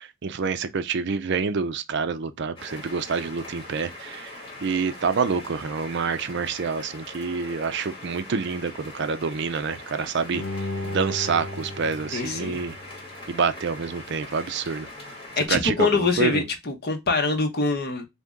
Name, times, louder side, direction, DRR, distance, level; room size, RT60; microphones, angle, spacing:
voice 1, 0.0-10.4 10.8-12.8 13.3-14.9 15.4-16.4, right 5 dB, 55° right, 0.5 m, -27 dB
sound 1, 2.6-15.5, left 1 dB, 25° left, 1.9 m, -42 dB
Bowed string instrument, 10.3-13.4 13.8-13.9, left 1 dB, 80° left, 1.3 m, -35 dB
voice 2, 12.1-12.6 15.4-18.0, left 3 dB, 50° left, 1.1 m, -24 dB
4.0 x 2.9 x 3.5 m
head